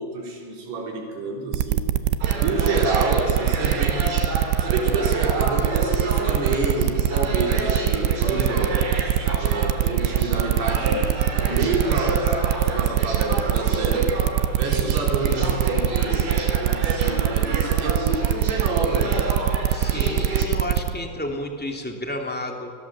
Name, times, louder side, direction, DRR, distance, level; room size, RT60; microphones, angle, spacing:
voice 1, 0.0-1.8 2.3-4.3 4.6-9.0 9.4-14.1 14.6-19.2 19.8-20.1, right 2 dB, 65° right, 0 dB, 6.1 m, -28 dB
sound 1, 1.5-20.9, right 12 dB, 85° right, 3.0 m, -22 dB
sound 2, 2.2-20.5, right 2 dB, 50° right, 5.9 m, -30 dB
voice 2, 19.7-22.7, left 1 dB, 5° left, 2 dB, 1.1 m, -31 dB
29.5 x 22.0 x 7.4 m, 2.4 s
omnidirectional pair, 5.0 m